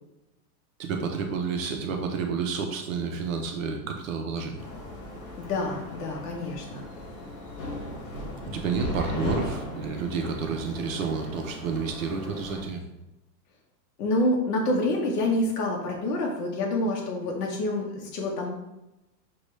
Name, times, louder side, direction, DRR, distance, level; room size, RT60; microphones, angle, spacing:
voice 1, 0.8-4.6 8.4-12.8, right 5 dB, 55° right, 3 dB, 0.6 m, -30 dB
sound 1, 4.6-12.6, left 1 dB, 35° left, 1.0 m, -37 dB
voice 2, 5.4-6.9 14.0-18.5, left 1 dB, 65° left, -1 dB, 1.0 m, -27 dB
6.5 x 2.3 x 3.1 m, 0.93 s
supercardioid pair, 175°, 49 cm